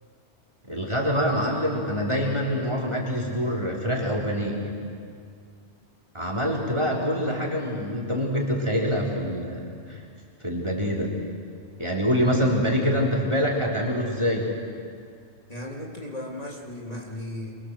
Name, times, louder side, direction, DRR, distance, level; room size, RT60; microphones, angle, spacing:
voice 1, 0.7-4.8 6.1-10.0 10.4-11.1 11.8-14.5, equal, 25° right, -2 dB, 4.1 m, -25 dB
voice 2, 15.5-17.6, left 1 dB, 30° left, -2 dB, 3.0 m, -36 dB
27.0 x 24.0 x 7.7 m, 2.2 s
omnidirectional pair, 1.2 m